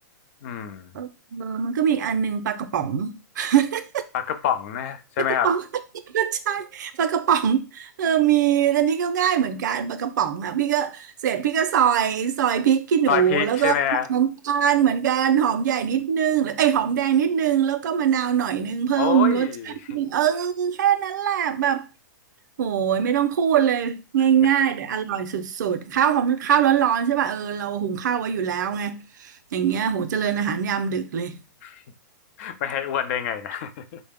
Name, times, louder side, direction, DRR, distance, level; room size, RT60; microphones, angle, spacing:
voice 1, 0.4-0.9 4.1-5.5 13.1-14.1 19.0-19.8 31.6-31.8 32.4-34.0, left 9 dB, 45° left, 0.5 m, -26 dB
voice 2, 0.9-4.0 5.4-5.6 6.1-13.7 14.1-19.5 19.9-21.8 22.6-29.0 29.5-31.3, right 9 dB, 65° right, 0.5 m, -22 dB
3.9 x 2.1 x 3.5 m
hypercardioid pair, 150°, 10 cm